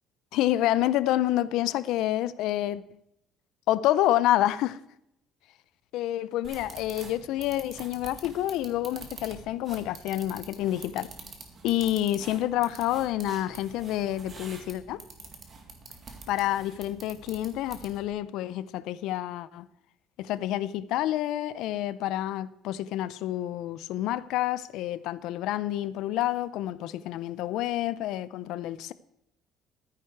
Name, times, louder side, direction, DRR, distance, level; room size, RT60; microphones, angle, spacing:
voice 1, 0.3-2.8 3.7-4.8 5.9-11.1 11.6-15.0 16.3-19.7 20.2-28.9, left 14 dB, 75° left, 0.5 m, -28 dB
sound 1, 6.4-18.1, right 4 dB, 35° right, 2.0 m, -46 dB
13.0 x 9.7 x 4.6 m
cardioid pair, 145°, 0 cm